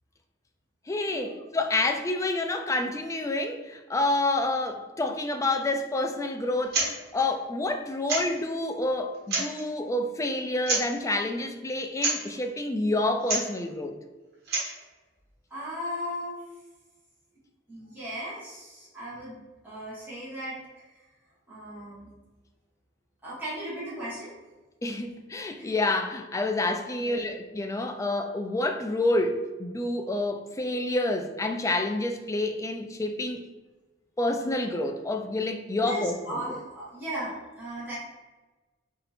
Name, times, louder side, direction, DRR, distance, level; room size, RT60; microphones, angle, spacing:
voice 1, 0.9-6.8 7.1-14.0 24.8-33.4 34.2-36.4, left 2 dB, 15° left, 5 dB, 0.3 m, -28 dB
sound 1, 6.6-6.9 7.2-7.3 8.1-8.4 9.1-9.6 10.6-11.0 12.0-12.2 13.2-13.5 14.3-14.8, right 3 dB, 55° right, 1.4 m, -28 dB
voice 2, 15.5-16.4 17.7-19.4 19.6-20.6 21.5-22.1 23.2-24.3 25.6-25.7 27.0-27.3 35.8-38.0, equal, 10° right, -9 dB, 1.4 m, -36 dB
4.3 x 2.8 x 4.1 m, 1.2 s
head